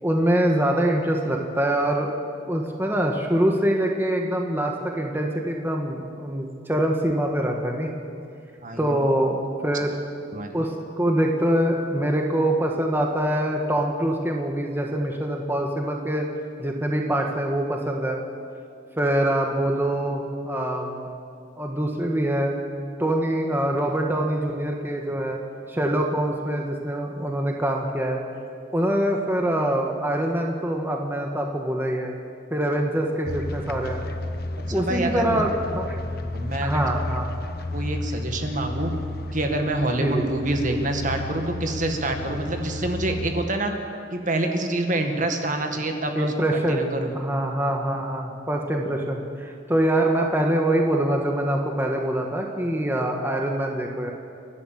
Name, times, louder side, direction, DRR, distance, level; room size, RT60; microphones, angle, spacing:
voice 1, 0.0-2.1 2.5-7.9 8.8-9.9 10.5-16.2 16.6-18.2 19.0-21.1 21.6-22.6 23.0-25.4 25.7-28.2 28.7-32.1 32.5-34.1 34.7-36.0 36.6-37.3 40.0-40.2 46.1-54.1, right 1 dB, 10° right, 1 dB, 1.5 m, -24 dB
voice 2, 8.6-9.0 10.3-10.6 34.7-35.4 36.3-37.0 37.7-38.9 39.3-43.7 44.1-47.1, right 2 dB, 45° right, 4 dB, 1.8 m, -26 dB
sound 1, 33.3-43.3, left 2 dB, 55° left, 1.2 m, -32 dB
29.5 x 11.5 x 7.5 m, 2.4 s
head